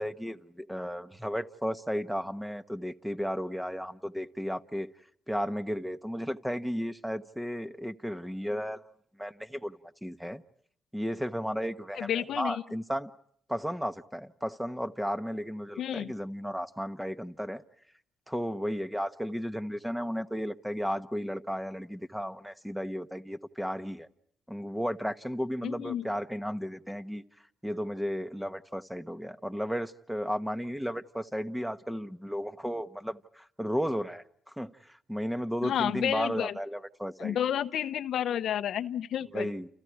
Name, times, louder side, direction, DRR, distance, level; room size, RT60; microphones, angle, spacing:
voice 1, 0.0-4.9 5.3-8.8 9.2-10.4 10.9-13.1 13.5-17.6 18.3-24.1 24.5-27.2 27.6-37.4 39.3-39.7, equal, ahead, 1.2 m, -34 dB
voice 2, 11.9-12.6 15.8-16.1 25.6-26.1 35.6-36.5 37.2-39.5, left 10 dB, 70° left, 1.0 m, -31 dB
30.0 x 29.0 x 4.8 m
cardioid pair, 90°, 0 cm